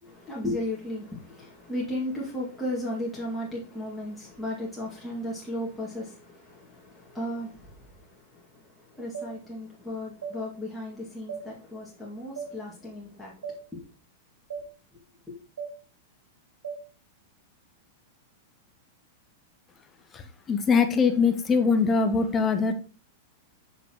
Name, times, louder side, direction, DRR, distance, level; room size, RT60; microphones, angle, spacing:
voice 1, 0.0-13.3 13.7-13.8 15.3-15.4, left 1 dB, 5° left, 2.1 m, -35 dB
sound 1, 9.1-9.3 10.2-10.4 11.3-11.4 12.4-12.5 13.4-13.6 14.5-14.7 15.6-15.7 16.6-16.8, right 6 dB, 80° right, 1.4 m, -35 dB
voice 2, 20.5-22.7, left 5 dB, 25° left, 1.0 m, -22 dB
6.9 x 5.9 x 3.0 m
hypercardioid pair, 115°, 0 cm